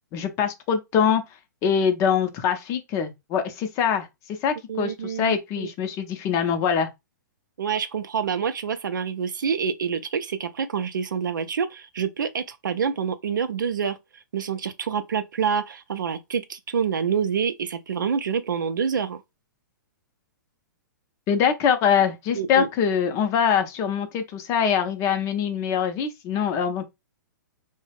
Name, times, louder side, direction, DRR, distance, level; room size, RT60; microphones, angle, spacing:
voice 1, 0.1-1.2 1.6-4.1 4.4-6.9 21.3-26.9, left 7 dB, 30° left, 0.5 m, -23 dB
voice 2, 4.7-5.7 7.6-14.0 14.3-19.2 22.3-22.7, right 6 dB, 80° right, 0.4 m, -27 dB
2.3 x 2.0 x 3.3 m
hypercardioid pair, 120°, 10 cm